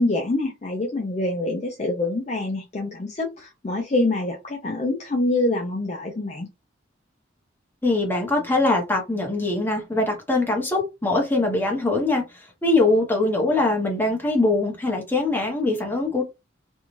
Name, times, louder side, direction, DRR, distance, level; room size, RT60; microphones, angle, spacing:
voice 1, 0.0-6.5, left 2 dB, 35° left, 0.4 m, -25 dB
voice 2, 7.8-12.2 12.6-16.2, left 2 dB, 10° left, 0.8 m, -22 dB
2.6 x 2.3 x 3.0 m
head